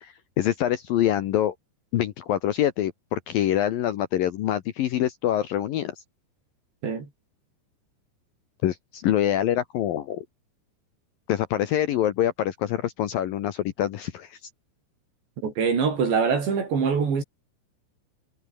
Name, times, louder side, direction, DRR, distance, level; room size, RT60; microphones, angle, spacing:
voice 1, 0.0-1.6 1.9-5.9 8.6-10.3 11.3-14.4, left 11 dB, 65° left, 2.4 m, -25 dB
voice 2, 15.4-17.2, right 6 dB, 70° right, 7.8 m, -24 dB
omnidirectional pair, 5.3 m